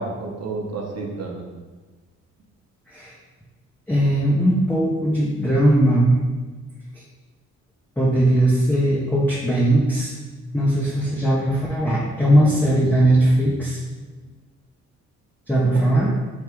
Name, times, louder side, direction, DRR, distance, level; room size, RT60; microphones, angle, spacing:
voice 1, 0.0-1.4 12.3-12.8 15.7-15.8, right 3 dB, 55° right, 1 dB, 0.8 m, -31 dB
voice 2, 3.9-6.2 8.0-10.1 10.5-13.8 15.5-16.1, right 1 dB, 5° left, -4 dB, 0.6 m, -19 dB
3.4 x 2.4 x 4.4 m, 1.3 s
cardioid pair, 90°, 30 cm